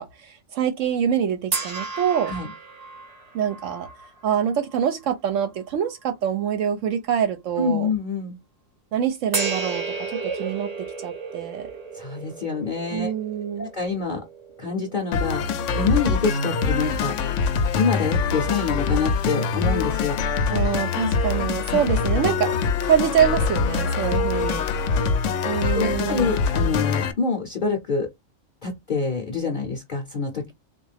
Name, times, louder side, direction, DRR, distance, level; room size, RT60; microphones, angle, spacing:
voice 1, 0.0-2.3 3.3-3.9 4.2-7.9 8.9-11.7 12.9-13.7 20.5-22.5 22.8-24.7 25.4-26.4, right 8 dB, 75° right, 0.9 m, -25 dB
sound 1, 1.5-5.0 5.6-5.7 9.3-15.7, right 4 dB, 35° right, 0.8 m, -33 dB
voice 2, 7.6-8.4 11.9-13.1 13.6-14.2 14.6-17.1 17.8-20.2 21.7-21.8 25.7-28.1 28.6-30.5, left 5 dB, 45° left, 0.7 m, -26 dB
sound 2, 15.1-27.1, left 4 dB, 70° left, 0.9 m, -24 dB
3.5 x 2.4 x 3.3 m
omnidirectional pair, 1.4 m